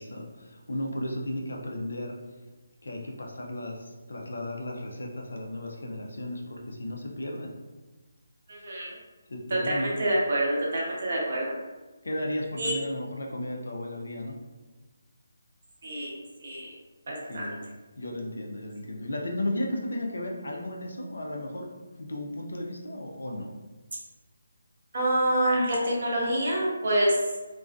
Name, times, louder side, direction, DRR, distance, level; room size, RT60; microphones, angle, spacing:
voice 1, 0.0-2.2 2.8-7.5 9.3-10.0 12.0-14.4 17.3-17.6 18.0-21.7 22.0-23.5, left 1 dB, 80° left, 0 dB, 0.5 m, -34 dB
voice 2, 8.5-8.9 9.5-11.5 12.6-12.7 15.8-16.1 16.4-16.7 17.1-17.5 24.9-27.2, right 1 dB, 50° right, -4 dB, 0.7 m, -26 dB
2.4 x 2.2 x 2.4 m, 1.2 s
hypercardioid pair, 170°, 0 cm